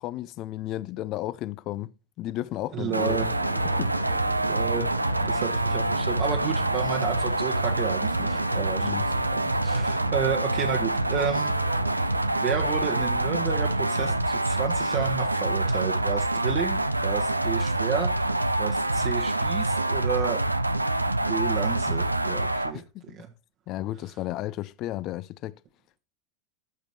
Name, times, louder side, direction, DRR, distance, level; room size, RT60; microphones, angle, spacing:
voice 1, 0.0-1.9 2.2-3.2 3.8-3.9 8.8-9.1 22.9-23.2 23.7-25.6, left 15 dB, 45° left, 0.4 m, -33 dB
sound 1, 2.4-15.5, left 4 dB, 20° left, 0.8 m, -46 dB
voice 2, 2.7-3.3 4.4-5.0 5.2-9.1 9.6-11.5 12.4-20.4 21.3-23.3, right 8 dB, 40° right, 1.0 m, -32 dB
sound 2, 2.9-22.7, right 2 dB, 90° right, 0.4 m, -26 dB
12.5 x 5.2 x 2.8 m
figure-of-eight pair, 80°, 0 cm